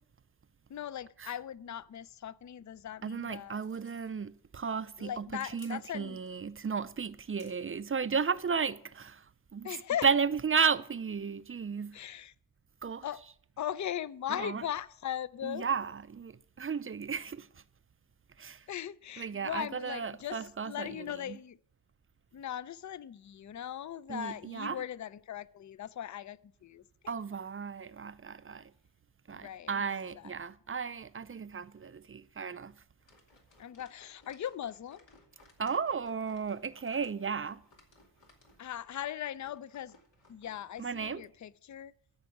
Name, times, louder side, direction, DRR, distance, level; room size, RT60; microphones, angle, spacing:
voice 1, 0.7-3.6 5.0-6.2 9.6-10.1 11.9-12.3 13.0-13.2 13.6-15.7 18.7-21.6 22.3-27.1 29.3-29.8 30.1-30.3 33.6-35.0 38.6-40.0 40.3-41.9, left 10 dB, 45° left, 0.4 m, -39 dB
voice 2, 3.0-9.3 9.5-9.7 10.0-12.0 12.8-13.0 14.4-14.6 15.4-17.5 18.4-18.6 19.2-21.4 24.1-24.8 27.1-28.7 29.3-32.8 35.6-37.6 40.8-41.2, right 6 dB, 30° right, 0.4 m, -34 dB
sound 1, 3.5-8.5, left 3 dB, 60° left, 3.3 m, -64 dB
sound 2, 33.0-41.1, left 2 dB, 85° left, 2.5 m, -63 dB
13.5 x 5.3 x 7.8 m
wide cardioid pair, 75°, 44 cm